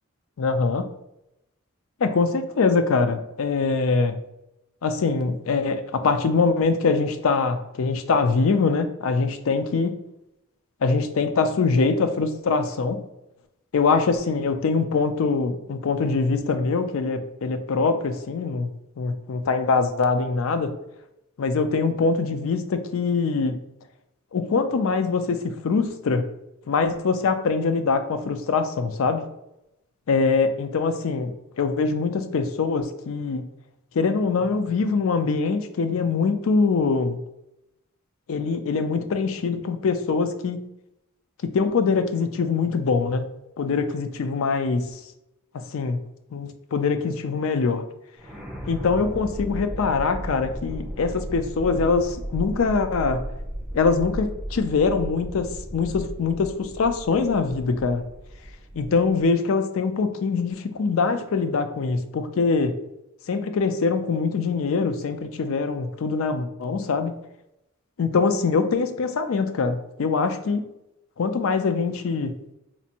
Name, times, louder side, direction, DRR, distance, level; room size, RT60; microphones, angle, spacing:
voice 1, 0.4-0.9 2.0-4.2 4.8-10.0 10.8-13.0 13.7-18.7 19.0-20.7 21.4-23.6 24.3-26.3 26.7-29.2 30.1-33.4 33.9-37.2 38.3-40.6 41.5-43.3 43.6-45.0 45.7-46.0 46.3-47.8 48.7-53.2 53.7-58.0 58.7-62.8 63.3-67.1 68.0-70.6 71.2-72.3, left 4 dB, 70° left, 9 dB, 0.4 m, -23 dB
sound 1, 48.2-59.3, right 1 dB, ahead, 0.8 m, -35 dB
4.2 x 2.5 x 2.8 m, 0.86 s
head